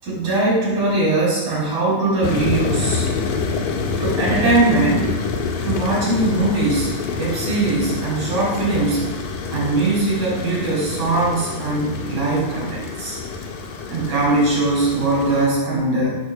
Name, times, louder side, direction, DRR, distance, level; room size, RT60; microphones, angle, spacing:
voice 1, 0.0-3.1 4.0-5.1 5.6-6.9 7.2-9.0 9.5-13.2 13.9-16.2, right 2 dB, 50° right, -6 dB, 7.0 m, -20 dB
sound 1, 2.2-15.5, left 4 dB, 70° left, 3.2 m, -27 dB
16.5 x 6.4 x 7.1 m, 1.2 s
omnidirectional pair, 4.2 m